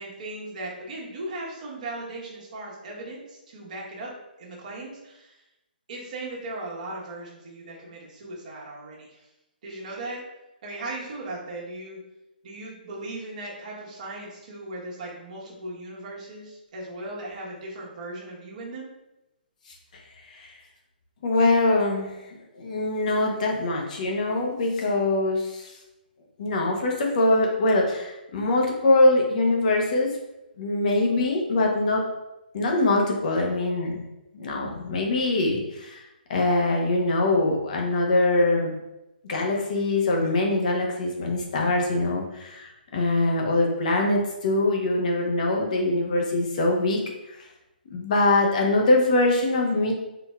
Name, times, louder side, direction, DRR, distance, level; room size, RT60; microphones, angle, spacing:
voice 1, 0.0-4.1 4.4-5.4 5.9-9.3 9.6-10.2 10.6-12.0 12.4-18.9, right 2 dB, 50° right, -5 dB, 1.3 m, -37 dB
voice 2, 21.2-22.2 22.5-25.7 26.4-30.1 30.6-32.1 32.5-34.1 34.3-36.0 36.3-38.7 39.3-47.0 47.3-47.5 47.9-49.9, left 2 dB, 50° left, 0 dB, 1.0 m, -23 dB
4.0 x 3.9 x 2.4 m, 0.93 s
figure-of-eight pair, 135°, 5 cm